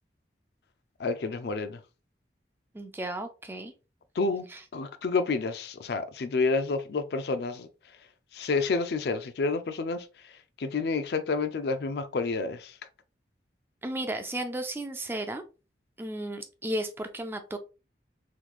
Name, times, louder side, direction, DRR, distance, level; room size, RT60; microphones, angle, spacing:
voice 1, 1.0-1.8 4.1-4.5 4.7-7.7 8.3-10.3 10.6-12.8, left 4 dB, 60° left, 0.4 m, -29 dB
voice 2, 2.7-3.7 4.5-4.6 13.8-15.4 16.0-17.6, right 1 dB, 10° right, 0.3 m, -34 dB
3.8 x 3.1 x 2.3 m
head